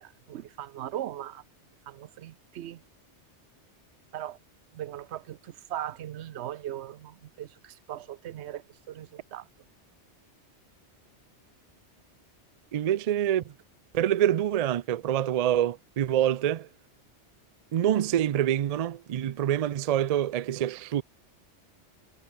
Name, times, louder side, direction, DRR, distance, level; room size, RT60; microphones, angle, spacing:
voice 1, 0.0-1.4 1.9-2.8 4.1-4.4 4.7-9.5, right 12 dB, 75° right, 0.9 m, -39 dB
voice 2, 12.7-13.5 13.9-16.7 17.7-21.0, right 11 dB, 90° right, 0.3 m, -26 dB
omnidirectional pair, 1.2 m